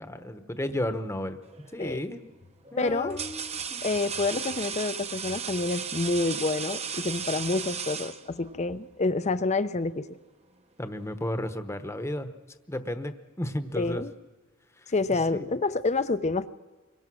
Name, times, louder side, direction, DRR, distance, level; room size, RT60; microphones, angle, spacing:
voice 1, 0.0-1.4 1.7-2.2 2.7-3.8 10.8-12.3 12.7-14.1 14.8-15.5, left 1 dB, 15° left, 9 dB, 1.1 m, -33 dB
sound 1, 1.5-1.8 2.6-8.6, right 6 dB, 30° right, 0.9 m, -35 dB
voice 2, 2.8-3.2 3.8-10.1 13.8-14.1 14.9-16.5, left 3 dB, 35° left, 13 dB, 0.7 m, -28 dB
25.5 x 23.0 x 6.3 m, 1.2 s
head